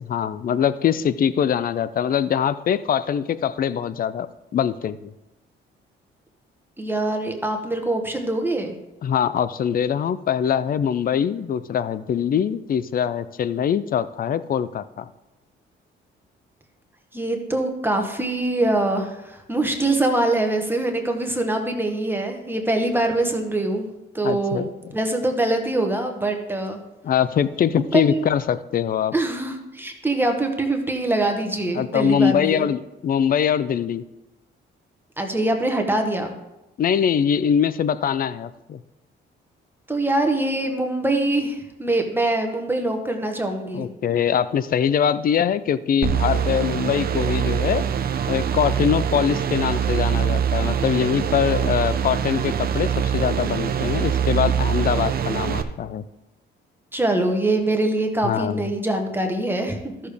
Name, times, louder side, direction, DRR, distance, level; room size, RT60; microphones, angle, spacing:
voice 1, 0.1-4.3 4.5-5.1 9.0-15.1 24.2-24.7 27.0-29.1 31.7-34.0 36.8-38.8 43.7-47.9 48.3-56.0 58.2-58.7, left 8 dB, 45° left, 15 dB, 0.5 m, -23 dB
voice 2, 6.8-8.7 17.1-23.9 24.1-26.8 27.9-28.3 29.1-32.7 35.2-36.3 39.9-43.9 56.9-59.9, right 2 dB, 10° right, 3 dB, 1.2 m, -23 dB
sound 1, 46.0-55.6, right 8 dB, 50° right, 0.8 m, -23 dB
13.0 x 6.6 x 3.5 m, 0.96 s
cardioid pair, 90°, 20 cm